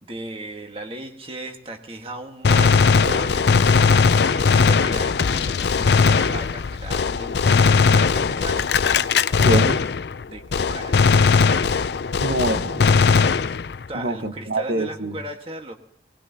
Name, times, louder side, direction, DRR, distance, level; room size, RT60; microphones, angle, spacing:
voice 1, 0.0-8.7 10.3-11.8 13.9-15.7, right 2 dB, 30° right, 4 dB, 1.5 m, -36 dB
Gunshot gunfire, 2.4-10.2 10.5-13.9, left 5 dB, 70° left, 0.5 m, -19 dB
voice 2, 9.4-9.8 12.2-12.8 13.9-15.2, right 1 dB, 70° right, 7 dB, 1.4 m, -25 dB
20.5 x 19.5 x 2.8 m, 0.66 s
head